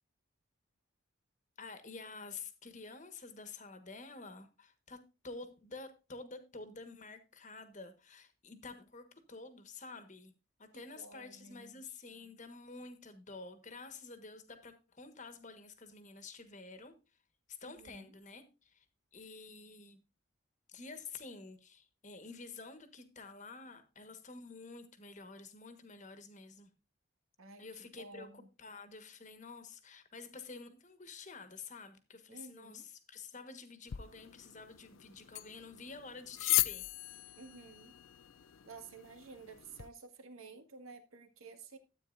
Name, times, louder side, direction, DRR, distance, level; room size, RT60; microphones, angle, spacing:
voice 1, 1.6-10.3 10.6-17.0 17.5-18.8 19.1-20.0 20.7-26.7 27.6-36.9, left 4 dB, 35° left, 1.4 m, -50 dB
voice 2, 10.7-11.8 17.6-18.1 27.4-27.6 28.0-28.5 32.3-32.9 37.4-37.9 38.6-41.8, right 4 dB, 85° right, 1.9 m, -52 dB
sound 1, 33.9-39.9, left 16 dB, 75° left, 0.5 m, -38 dB
13.0 x 9.0 x 2.6 m
head